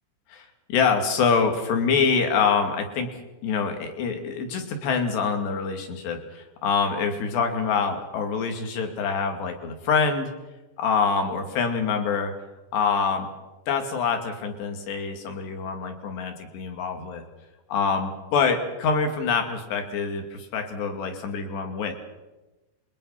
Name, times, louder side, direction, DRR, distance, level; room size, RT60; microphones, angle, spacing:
voice 1, 0.3-10.3 10.8-12.3 12.7-13.3 13.7-17.2 17.7-21.9, left 5 dB, 60° left, 5 dB, 4.3 m, -25 dB
27.5 x 23.0 x 5.9 m, 1.1 s
omnidirectional pair, 5.8 m